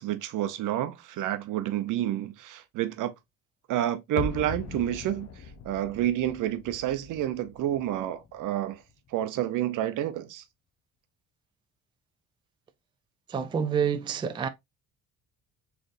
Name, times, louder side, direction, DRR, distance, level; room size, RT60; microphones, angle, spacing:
voice 1, 0.0-3.1 3.7-8.8 9.1-10.4, right 12 dB, 70° right, 0.7 m, -29 dB
sound 1, 4.2-9.1 9.4-9.5, left 4 dB, 50° left, 0.7 m, -40 dB
voice 2, 13.3-14.5, right 7 dB, 15° right, 0.3 m, -28 dB
3.9 x 3.4 x 2.5 m
cardioid pair, 125°, 32 cm